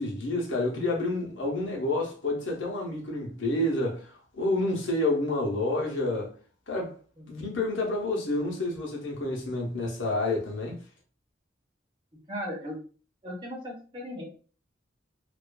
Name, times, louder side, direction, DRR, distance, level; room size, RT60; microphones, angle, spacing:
voice 1, 0.0-6.3 6.7-6.9 7.3-10.8, left 2 dB, 80° left, 0.8 m, -29 dB
voice 2, 12.3-12.8 13.2-14.3, equal, 25° right, 0.8 m, -37 dB
2.4 x 2.3 x 2.2 m
head